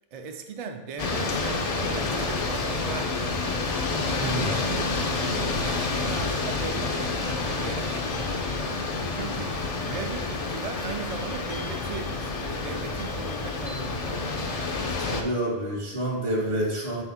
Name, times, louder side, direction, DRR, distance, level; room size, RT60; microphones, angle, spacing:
voice 1, 0.1-3.3 4.3-14.4 15.1-15.3, right 5 dB, 50° right, 5 dB, 0.4 m, -38 dB
sound 1, 1.0-15.2, left 3 dB, 45° left, 0.6 m, -29 dB
voice 2, 4.2-4.6 15.0-17.0, right 1 dB, 70° right, -2 dB, 1.6 m, -28 dB
4.8 x 3.6 x 5.6 m, 1.1 s
omnidirectional pair, 1.0 m